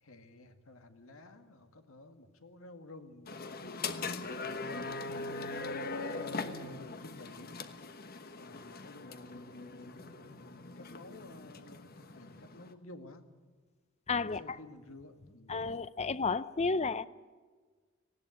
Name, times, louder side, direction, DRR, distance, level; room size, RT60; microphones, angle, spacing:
voice 1, 0.0-4.9 5.9-7.5 8.3-10.3 10.8-13.3 14.2-15.6, left 2 dB, 85° left, 2.0 m, -52 dB
sound 1, 3.3-12.7, left 3 dB, 45° left, 1.2 m, -41 dB
voice 2, 14.1-14.6 15.5-17.1, left 4 dB, 30° left, 0.6 m, -32 dB
19.0 x 16.5 x 9.4 m
head